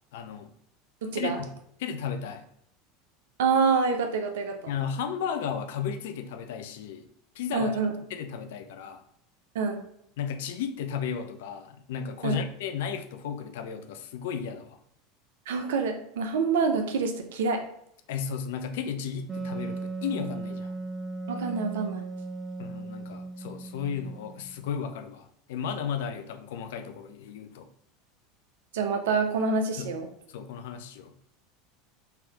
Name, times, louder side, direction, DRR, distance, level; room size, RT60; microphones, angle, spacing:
voice 1, 0.1-0.5 1.1-1.5 1.8-2.4 4.7-7.0 7.4-7.8 8.1-9.0 10.2-14.8 18.1-20.7 22.6-27.7 29.8-30.0 30.3-31.1, left 7 dB, 65° left, 8 dB, 0.4 m, -34 dB
voice 2, 1.0-1.4 3.4-4.6 7.5-7.9 9.5-9.8 12.2-12.4 15.5-17.6 21.3-22.0 28.7-30.1, right 4 dB, 70° right, 5 dB, 0.6 m, -26 dB
Wind instrument woodwind instrument, 19.3-24.7, right 3 dB, 15° right, 0.5 m, -37 dB
3.3 x 2.8 x 3.5 m, 0.73 s
figure-of-eight pair, 80°, 0 cm